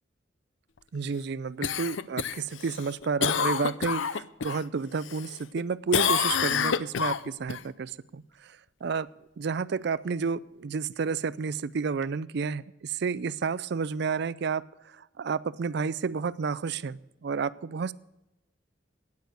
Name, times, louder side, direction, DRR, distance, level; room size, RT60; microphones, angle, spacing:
voice 1, 0.9-8.2 8.8-9.1 9.4-14.6 15.2-17.9, right 5 dB, 60° right, 18 dB, 0.4 m, -31 dB
Cough, 1.6-4.6 5.0-5.6 5.9-7.6 12.0-12.1, left 7 dB, 80° left, 0.5 m, -28 dB
13.0 x 9.6 x 6.5 m, 0.96 s
head